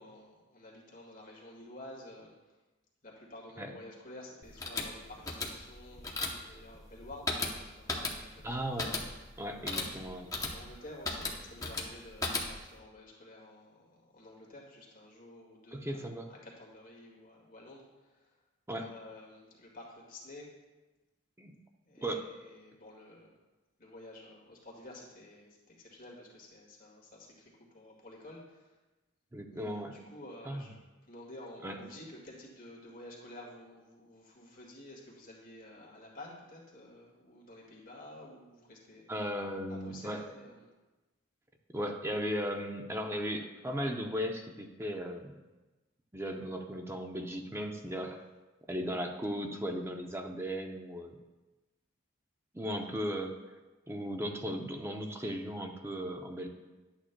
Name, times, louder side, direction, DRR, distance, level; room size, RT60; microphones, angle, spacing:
voice 1, 0.0-2.3 3.0-8.7 9.6-18.4 18.7-20.5 21.9-23.3 23.8-28.8 29.5-30.8 31.0-39.3 39.7-40.7, left 1 dB, 40° left, -2 dB, 1.9 m, -51 dB
sound 1, 4.4-12.8, left 3 dB, 15° left, 0.8 m, -37 dB
voice 2, 8.4-9.0 9.4-10.3 15.7-16.3 18.7-18.9 21.4-21.5 22.0-22.3 29.3-29.9 30.5-30.6 31.6-31.8 39.1-40.2 41.7-45.3 46.1-48.2 48.7-51.2 52.5-53.4 53.9-56.5, equal, 10° right, 3 dB, 0.6 m, -36 dB
11.5 x 8.6 x 2.2 m, 1.1 s
head